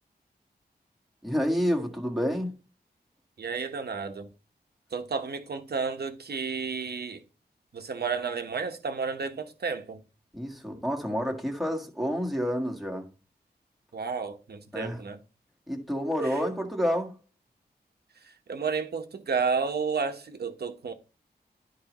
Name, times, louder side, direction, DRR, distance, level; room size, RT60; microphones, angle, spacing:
voice 1, 1.2-2.5 10.3-13.1 14.7-15.0 15.7-17.2, equal, ahead, 1.7 m, -29 dB
voice 2, 3.4-4.3 4.9-7.2 7.7-10.0 13.9-15.2 16.2-16.3 18.5-20.9, right 5 dB, 70° right, 1.3 m, -31 dB
12.5 x 4.7 x 3.1 m
wide cardioid pair, 125°, 17 cm